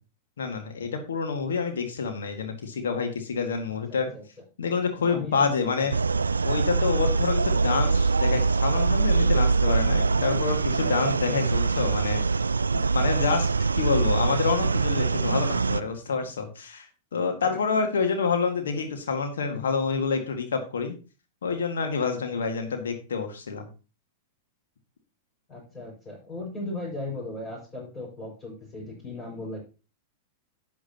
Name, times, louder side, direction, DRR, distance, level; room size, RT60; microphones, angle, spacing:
voice 1, 0.4-4.1 4.6-5.9 6.4-12.2 12.7-13.5 13.7-21.0 21.4-23.7, left 5 dB, 65° left, 5 dB, 1.8 m, -28 dB
voice 2, 3.9-4.2 5.0-5.9 11.2-11.3 19.5-19.6 25.5-29.6, left 2 dB, 25° left, -6 dB, 5.2 m, -37 dB
sound 1, 5.9-15.8, right 4 dB, 80° right, 0.4 m, -23 dB
11.5 x 8.7 x 2.9 m, 0.33 s
figure-of-eight pair, 95°, 0 cm